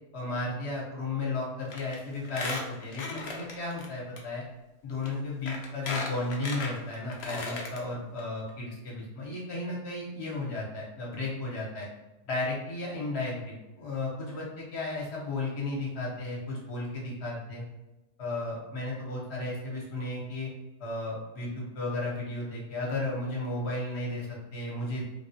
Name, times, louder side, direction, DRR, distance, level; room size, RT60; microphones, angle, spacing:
voice 1, 0.1-4.4 4.8-11.9 12.3-17.6 18.2-20.5 20.8-25.0, left 2 dB, 50° left, -4 dB, 1.0 m, -34 dB
Squeak, 1.7-1.9 2.2-3.9 4.2-4.3 5.0-5.1 5.5-7.8 8.2-8.3 8.5-8.6, left 3 dB, 70° left, 0.6 m, -36 dB
3.3 x 2.3 x 2.6 m, 1.0 s
omnidirectional pair, 1.7 m